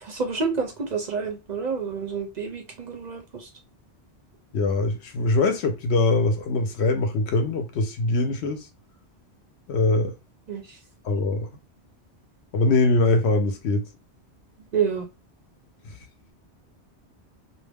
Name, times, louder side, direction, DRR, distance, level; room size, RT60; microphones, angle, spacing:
voice 1, 0.0-3.5 10.5-10.8 14.7-15.1, right 5 dB, 50° right, 0.5 m, -28 dB
voice 2, 4.5-8.7 9.7-10.1 11.0-11.5 12.5-13.8, left 2 dB, 75° left, 0.8 m, -22 dB
2.5 x 2.0 x 3.4 m
omnidirectional pair, 1.2 m